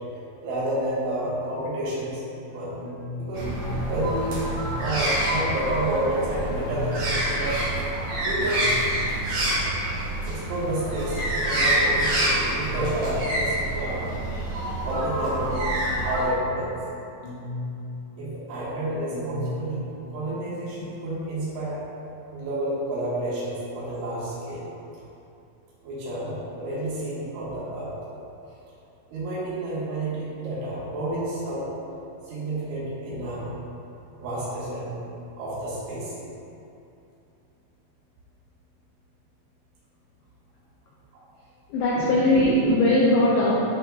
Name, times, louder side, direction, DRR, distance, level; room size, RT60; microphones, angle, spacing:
voice 1, 0.4-2.2 2.5-2.8 3.2-3.4 3.9-7.6 8.2-8.6 9.4-9.5 10.3-14.1 14.8-15.7 16.0-16.8 18.2-19.8 20.1-21.8 22.3-24.7 25.8-27.9 29.1-31.7 32.3-33.5 34.2-35.0 35.4-36.1 41.1-41.2, right 1 dB, 90° right, -9 dB, 4.3 m, -30 dB
sound 1, 2.4-20.8, left 2 dB, 60° left, 2.3 m, -39 dB
sound 2, 3.3-16.2, right 1 dB, 55° right, 2.7 m, -27 dB
voice 2, 41.7-43.5, left 1 dB, 85° left, -6 dB, 2.1 m, -20 dB
11.0 x 5.8 x 2.5 m, 2.7 s
omnidirectional pair, 5.3 m